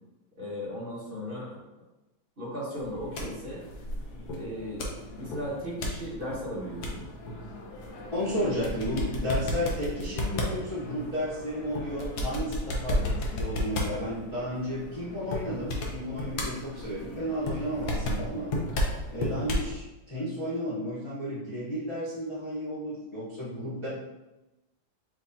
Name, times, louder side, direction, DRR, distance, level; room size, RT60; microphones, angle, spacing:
voice 1, 0.4-1.6 2.4-3.6 4.3-4.9 5.2-7.0 8.2-8.5, equal, 30° right, -7 dB, 1.4 m, -36 dB
sound 1, 2.8-19.7, left 1 dB, 60° left, 1.2 m, -34 dB
voice 2, 8.1-18.5 19.1-23.9, equal, 35° left, -9 dB, 0.4 m, -33 dB
4.6 x 4.0 x 2.7 m, 1.0 s
omnidirectional pair, 2.3 m